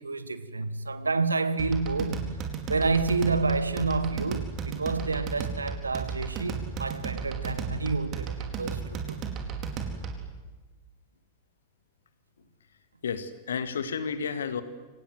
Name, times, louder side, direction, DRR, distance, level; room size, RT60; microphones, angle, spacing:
voice 1, 0.0-9.2, right 3 dB, 80° right, 1.5 m, -29 dB
sound 1, 1.6-10.3, right 6 dB, 35° right, 4.4 m, -34 dB
voice 2, 13.0-14.6, left 6 dB, 65° left, 2.2 m, -31 dB
29.5 x 25.5 x 8.0 m
figure-of-eight pair, 90°, 0 cm